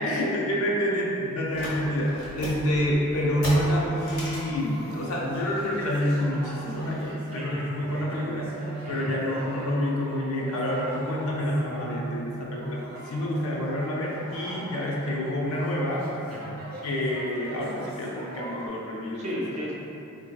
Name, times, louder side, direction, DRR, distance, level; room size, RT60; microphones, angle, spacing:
voice 1, 0.0-16.1 16.8-19.4, equal, 70° left, -3 dB, 0.5 m, -28 dB
sound 1, 1.5-7.1, left 1 dB, 45° left, 0.8 m, -39 dB
sound 2, 3.5-18.7, right 1 dB, 65° right, 0.7 m, -42 dB
voice 2, 7.3-7.7 8.8-9.1 16.3-16.6 19.1-19.7, equal, 30° right, -5 dB, 0.4 m, -35 dB
3.8 x 2.6 x 2.2 m, 2.9 s
head